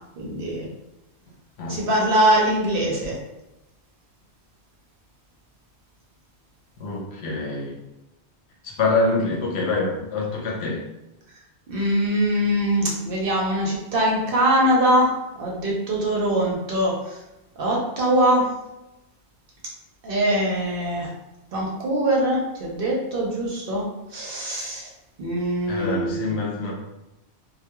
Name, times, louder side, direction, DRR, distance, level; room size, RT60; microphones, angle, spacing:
voice 1, 0.2-0.7 1.7-3.2 11.7-17.2 17.6-18.5 20.0-21.1 21.5-24.9 25.2-26.4, right 1 dB, 60° right, -2 dB, 0.7 m, -22 dB
voice 2, 6.8-7.7 8.6-10.8 25.7-26.7, left 3 dB, 75° left, -2 dB, 0.9 m, -25 dB
2.2 x 2.2 x 2.8 m, 0.94 s
omnidirectional pair, 1.1 m